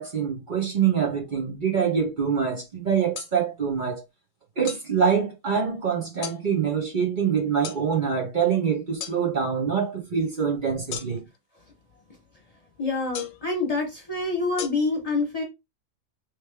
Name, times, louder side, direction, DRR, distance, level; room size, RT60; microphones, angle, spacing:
voice 1, 0.0-4.0 4.6-11.2, right 7 dB, 40° right, 1.0 m, -25 dB
sound 1, 3.1-3.3 4.7-4.9 6.2-6.4 7.6-7.8 9.0-9.2 10.9-11.4 13.1-13.5 14.6-14.7, left 9 dB, 85° left, 1.0 m, -34 dB
voice 2, 12.8-15.4, left 3 dB, 30° left, 1.0 m, -26 dB
3.2 x 3.2 x 3.3 m
omnidirectional pair, 1.4 m